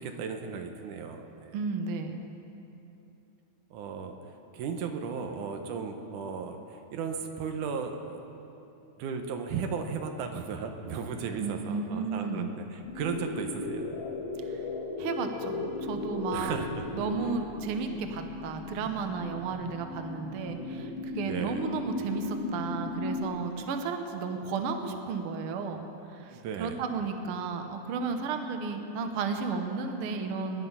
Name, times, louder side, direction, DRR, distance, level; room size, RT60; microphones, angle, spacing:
voice 1, 0.0-1.5 3.7-8.2 9.0-13.9 16.3-17.1 21.3-21.6 26.3-26.8, right 5 dB, 90° right, 5 dB, 2.5 m, -36 dB
voice 2, 1.5-2.2 11.4-12.5 14.5-14.6 15.0-16.6 16.9-25.9 26.1-30.7, right 5 dB, 60° right, 5 dB, 1.5 m, -33 dB
sound 1, 12.8-23.2, left 3 dB, 90° left, 3.5 m, -36 dB
21.5 x 11.0 x 5.6 m, 3.0 s
omnidirectional pair, 3.6 m